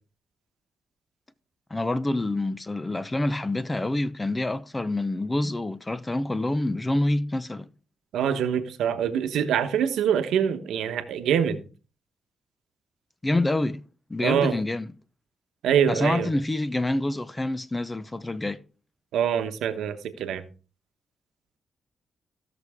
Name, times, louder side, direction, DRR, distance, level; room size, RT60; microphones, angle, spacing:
voice 1, 1.7-7.7 13.2-13.8 14.1-14.9 15.9-18.6, left 2 dB, 20° left, 0.8 m, -27 dB
voice 2, 8.1-11.6 14.2-14.5 15.6-16.3 19.1-20.4, right 8 dB, 90° right, 1.1 m, -24 dB
16.0 x 6.1 x 3.6 m
cardioid pair, 60°, 0 cm